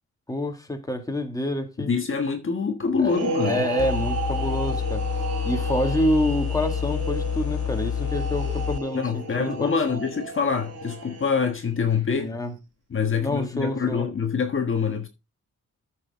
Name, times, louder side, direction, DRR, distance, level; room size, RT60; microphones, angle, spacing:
voice 1, 0.3-1.9 3.0-3.2 3.4-5.0 5.4-9.7 12.2-12.5 13.2-14.1, left 1 dB, 10° left, 2.0 m, -27 dB
voice 2, 1.8-3.7 8.9-12.3 12.9-15.1, left 5 dB, 40° left, 1.4 m, -25 dB
sound 1, 3.0-11.6, right 3 dB, 55° right, 5.1 m, -33 dB
Mike noise, 3.8-8.8, left 9 dB, 70° left, 0.7 m, -28 dB
14.0 x 6.4 x 3.6 m
wide cardioid pair, 175°, 32 cm